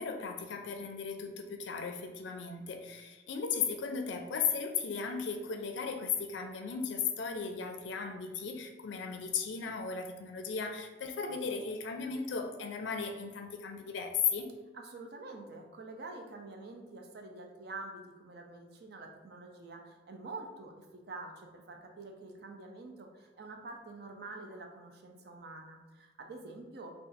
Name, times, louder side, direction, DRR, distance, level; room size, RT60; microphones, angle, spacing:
voice 1, 0.0-14.5, left 6 dB, 70° left, 5 dB, 0.4 m, -36 dB
voice 2, 14.7-26.9, right 3 dB, 55° right, 3 dB, 0.4 m, -47 dB
2.5 x 2.4 x 3.8 m, 1.2 s
head